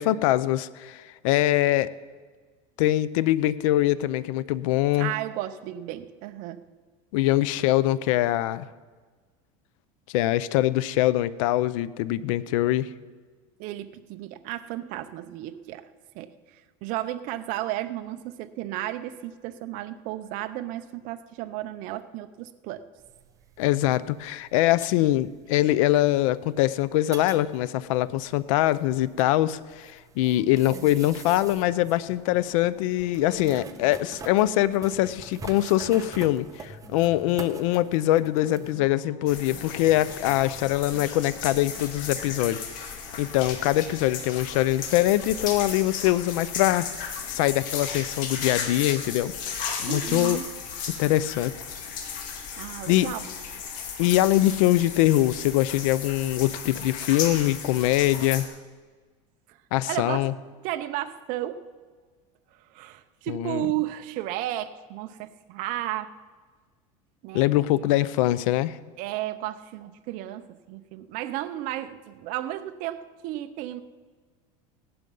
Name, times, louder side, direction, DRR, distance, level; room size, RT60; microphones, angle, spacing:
voice 1, 0.0-1.9 2.8-5.1 7.1-8.7 10.1-12.9 23.6-42.6 42.9-46.9 47.3-50.4 51.0-51.5 52.9-53.1 54.0-58.5 59.7-60.3 63.3-63.7 67.3-68.8, left 15 dB, 80° left, 17 dB, 0.6 m, -23 dB
voice 2, 5.0-6.6 13.6-15.9 16.2-16.3 16.8-22.9 49.9-50.5 52.6-53.2 59.5-59.6 59.9-60.3 60.6-61.7 62.7-66.1 67.2-67.4 69.0-73.8, right 14 dB, 55° right, 9 dB, 0.7 m, -33 dB
sound 1, 23.0-38.7, right 5 dB, 20° right, 0.9 m, -46 dB
sound 2, 30.2-42.6, left 2 dB, 15° left, 1.5 m, -48 dB
sound 3, 39.3-58.4, left 6 dB, 50° left, 2.2 m, -35 dB
17.0 x 11.0 x 5.4 m, 1.4 s
supercardioid pair, 145°, 17 cm